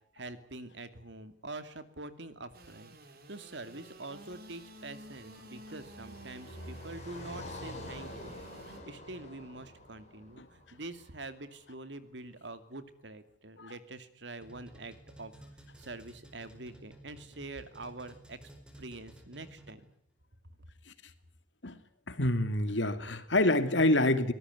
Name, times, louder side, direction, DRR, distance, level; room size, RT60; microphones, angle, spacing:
voice 1, 0.1-3.0 3.3-8.4 8.6-15.3 15.8-18.4 18.8-19.9, right 2 dB, 75° right, 11 dB, 2.5 m, -45 dB
Engine / Sawing, 2.5-8.8, right 1 dB, 55° right, 3.8 m, -52 dB
Car passing by, 4.4-11.6, left 1 dB, 40° left, 6.9 m, -47 dB
sound 1, 14.4-19.9, right 1 dB, 5° right, 4.7 m, -54 dB
voice 2, 22.1-24.3, left 1 dB, 85° left, 10 dB, 2.6 m, -27 dB
24.0 x 18.5 x 9.4 m, 0.66 s
head